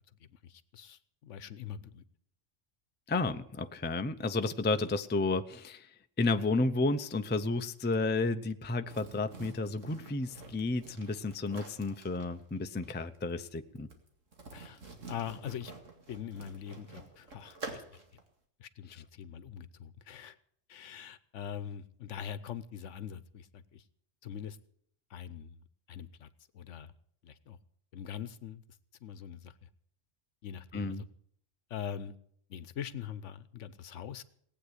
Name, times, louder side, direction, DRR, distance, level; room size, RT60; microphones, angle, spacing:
voice 1, 0.4-2.0 14.5-14.8 15.1-15.7 16.1-18.0 18.6-20.4 20.7-23.8 24.2-24.6 25.1-25.6 25.9-26.3 26.5-26.9 27.2-27.6 27.9-28.6 29.0-29.5 30.4-31.1 31.7-32.2 32.5-34.2, left 9 dB, 70° left, 15 dB, 1.1 m, -43 dB
voice 2, 3.1-5.9 6.2-13.9 30.7-31.0, left 3 dB, 15° left, 9 dB, 0.4 m, -32 dB
sound 1, 8.9-18.2, right 3 dB, 75° right, 2.5 m, -48 dB
18.5 x 8.6 x 8.2 m, 0.66 s
omnidirectional pair, 1.3 m